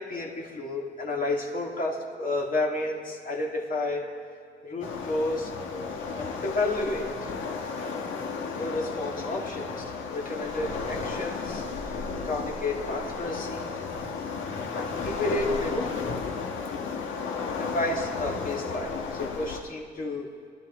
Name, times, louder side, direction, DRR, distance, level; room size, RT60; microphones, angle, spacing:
voice 1, 0.0-4.1 4.6-5.5 6.2-7.3 8.5-9.8 10.1-11.9 12.2-13.7 14.7-15.9 17.5-20.3, left 2 dB, 45° left, -2 dB, 2.2 m, -31 dB
Waves surf, 4.8-19.6, left 5 dB, 75° left, 1.6 m, -33 dB
23.5 x 12.0 x 3.8 m, 2.2 s
cardioid pair, 90°, 20 cm